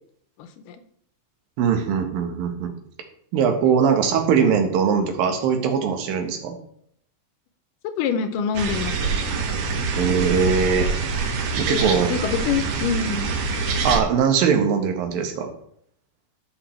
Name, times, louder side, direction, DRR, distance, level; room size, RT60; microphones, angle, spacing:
voice 1, 0.4-0.8 3.7-3.8 7.8-9.1 11.7-13.3, left 7 dB, 80° left, 9 dB, 2.2 m, -26 dB
voice 2, 1.6-2.7 3.3-6.6 10.0-10.9 11.6-12.1 13.8-15.5, right 6 dB, 85° right, 5 dB, 2.9 m, -21 dB
sound 1, 8.5-14.0, right 4 dB, 70° right, 1.7 m, -25 dB
12.0 x 5.7 x 3.2 m, 0.68 s
omnidirectional pair, 4.0 m